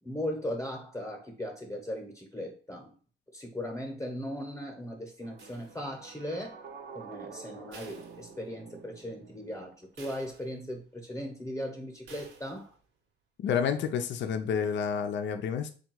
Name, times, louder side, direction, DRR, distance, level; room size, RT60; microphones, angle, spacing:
voice 1, 0.0-3.0 3.3-6.6 6.9-12.7, equal, 15° left, 0.9 m, -38 dB
sound 1, 5.2-10.0, right 5 dB, 55° right, 0.7 m, -48 dB
sound 2, 5.4-6.2 7.7-8.8 9.2-9.3 10.0-10.9 12.1-12.8, right 5 dB, 75° right, 1.0 m, -53 dB
voice 2, 13.4-15.7, left 7 dB, 65° left, 0.5 m, -29 dB
3.5 x 2.3 x 4.5 m
cardioid pair, 90°, 20 cm